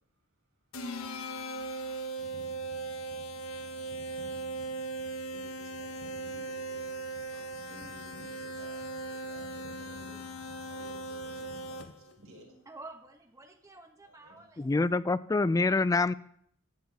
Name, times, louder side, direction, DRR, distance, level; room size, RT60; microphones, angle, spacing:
sound 1, 0.7-12.1, right 2 dB, 75° left, 1.2 m, -39 dB
sound 2, 2.2-11.9, left 2 dB, 50° left, 1.0 m, -54 dB
voice 1, 5.2-12.7 14.0-14.4 14.7-14.8, right 1 dB, 70° right, 5.2 m, -55 dB
voice 2, 12.7-14.7, right 2 dB, 15° right, 1.3 m, -49 dB
voice 3, 14.6-16.1, left 3 dB, 15° left, 0.3 m, -26 dB
14.5 x 9.6 x 3.5 m
head